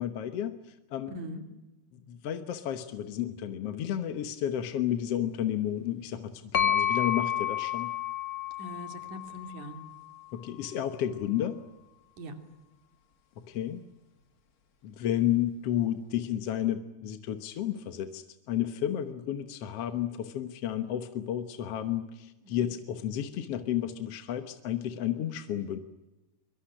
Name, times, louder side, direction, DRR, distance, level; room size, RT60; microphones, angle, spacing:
voice 1, 0.0-1.2 1.9-7.9 10.3-11.6 13.4-13.8 14.8-25.8, left 11 dB, 60° left, 9 dB, 1.9 m, -32 dB
voice 2, 1.1-1.4 8.6-9.8 12.2-12.4 22.4-22.6, equal, 70° right, 6 dB, 4.1 m, -41 dB
sound 1, 6.5-10.3, left 9 dB, 45° left, 1.2 m, -31 dB
24.0 x 24.0 x 10.0 m, 1.0 s
omnidirectional pair, 3.6 m